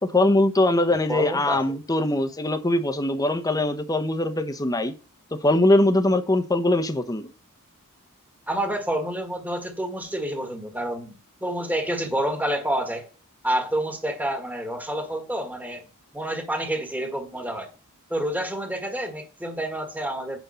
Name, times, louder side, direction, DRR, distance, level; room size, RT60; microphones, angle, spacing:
voice 1, 0.0-4.9 5.4-7.3, left 1 dB, 15° left, 0.9 m, -22 dB
voice 2, 1.1-1.6 8.5-13.1 13.4-15.8 16.1-17.7 18.1-20.4, right 1 dB, 10° right, 1.6 m, -28 dB
9.3 x 5.4 x 5.7 m
head